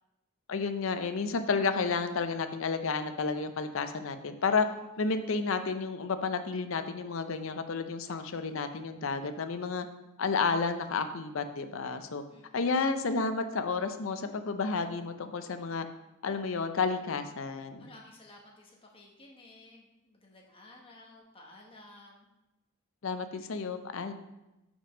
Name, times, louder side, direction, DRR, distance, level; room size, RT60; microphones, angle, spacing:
voice 1, 0.5-4.7 5.0-9.9 10.2-12.2 12.5-15.9 16.2-17.9 23.0-24.1, left 4 dB, 65° left, 9 dB, 0.5 m, -31 dB
voice 2, 8.3-8.7 12.3-12.7 17.8-22.3, left 2 dB, 25° left, -1 dB, 1.1 m, -55 dB
5.4 x 5.0 x 5.0 m, 0.97 s
head